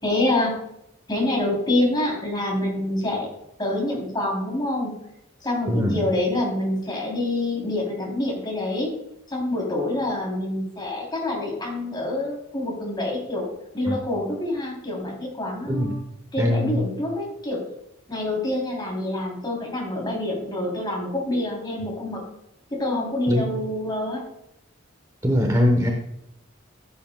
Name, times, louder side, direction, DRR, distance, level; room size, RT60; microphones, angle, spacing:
voice 1, 0.0-0.6 1.1-3.3 3.6-5.0 5.4-8.9 9.3-13.5 13.7-16.0 16.3-17.6 18.1-22.2 22.7-24.2, left 1 dB, 20° left, -2 dB, 3.1 m, -26 dB
voice 2, 5.7-6.1 13.9-14.0 15.7-15.9 16.4-16.8 23.3-23.5 25.2-25.9, left 1 dB, 15° right, 2 dB, 0.9 m, -21 dB
14.5 x 8.4 x 2.2 m, 0.83 s
head